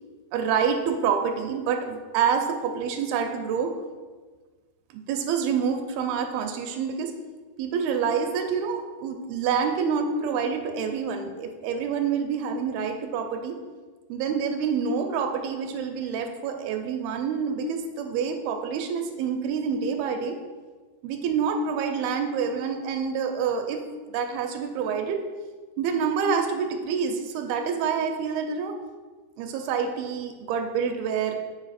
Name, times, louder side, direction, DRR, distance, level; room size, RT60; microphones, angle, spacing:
voice 1, 0.3-3.7 4.9-7.1 7.6-13.6 14.1-20.4 21.0-23.8 24.1-25.2 25.8-28.8 29.4-31.4, right 6 dB, 80° right, 5 dB, 2.5 m, -27 dB
7.9 x 4.9 x 4.1 m, 1.4 s
omnidirectional pair, 4.5 m